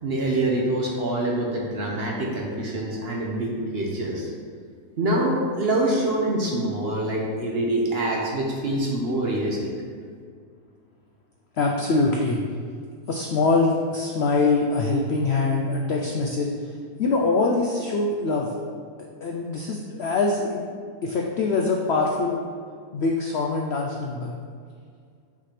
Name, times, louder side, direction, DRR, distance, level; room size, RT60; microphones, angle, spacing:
voice 1, 0.0-4.3 5.0-9.7, right 1 dB, 50° right, -2 dB, 0.9 m, -25 dB
voice 2, 11.6-12.4 13.1-16.5 17.0-18.5 19.0-20.6 21.0-22.4 22.9-24.3, left 3 dB, 70° left, 0 dB, 0.6 m, -23 dB
5.8 x 3.2 x 5.7 m, 2.1 s
omnidirectional pair, 1.6 m